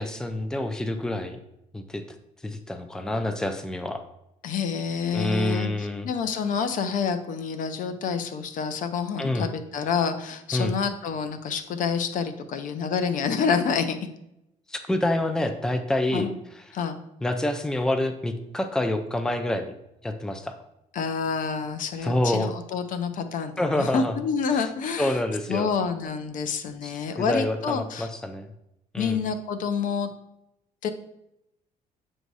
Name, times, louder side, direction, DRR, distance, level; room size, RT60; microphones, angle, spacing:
voice 1, 0.0-1.4 1.7-2.0 2.4-4.0 5.1-6.1 9.2-9.5 10.5-10.7 14.7-16.3 17.2-19.7 20.0-20.6 22.0-22.5 23.6-24.1 24.5-24.7 25.0-25.7 26.8-26.9 27.2-28.5 28.9-29.2, left 1 dB, 5° left, 7 dB, 0.5 m, -27 dB
voice 2, 4.4-14.0 16.1-16.3 16.7-17.0 20.9-25.2 25.5-28.1 29.0-30.1 30.8-30.9, left 6 dB, 65° left, 9 dB, 0.6 m, -28 dB
7.5 x 2.7 x 4.7 m, 0.84 s
cardioid pair, 115°, 14 cm